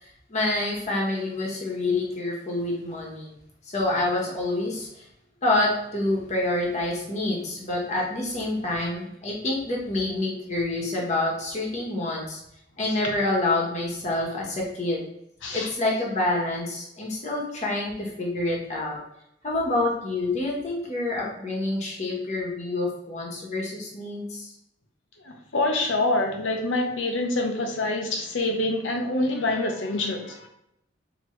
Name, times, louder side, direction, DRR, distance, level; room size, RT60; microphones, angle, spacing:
voice 1, 0.0-3.3 3.6-5.0 5.4-12.4 12.8-15.1 15.5-19.0 19.4-24.5, left 2 dB, 40° left, -3 dB, 1.1 m, -27 dB
voice 2, 25.2-30.5, left 2 dB, 90° left, 3 dB, 0.8 m, -26 dB
4.4 x 3.0 x 3.1 m, 0.81 s
head